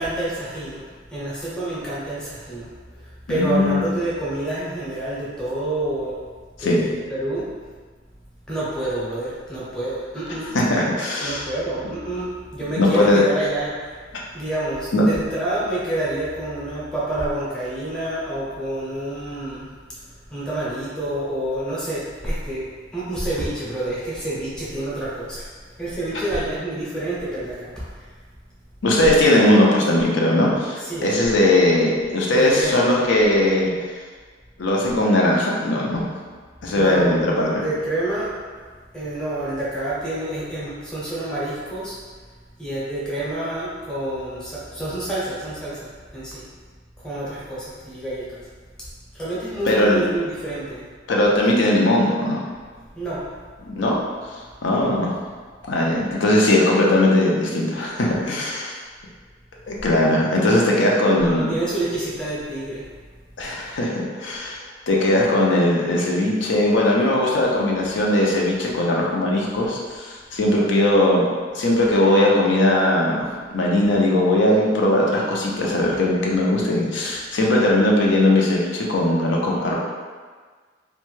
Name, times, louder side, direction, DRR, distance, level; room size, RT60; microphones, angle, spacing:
voice 1, 0.0-6.2 6.6-7.5 8.5-10.6 11.2-14.0 14.3-19.7 20.1-25.5 25.8-28.1 30.8-31.1 32.3-32.8 36.7-38.4 38.9-42.0 42.6-46.5 47.0-48.5 48.8-48.9 49.1-50.9 52.9-53.3 61.1-62.9, right 1 dB, 5° left, -9 dB, 0.7 m, -28 dB
voice 2, 3.3-3.8 6.6-6.8 10.5-11.5 12.8-13.2 14.9-15.1 28.8-33.7 34.6-36.0 36.6-37.6 49.6-50.0 51.1-52.4 53.6-54.0 54.6-55.1 55.6-58.7 59.7-61.5 63.4-71.2 71.5-73.2 73.5-79.8, left 1 dB, 70° left, -3 dB, 0.5 m, -19 dB
2.5 x 2.2 x 3.1 m, 1.5 s
head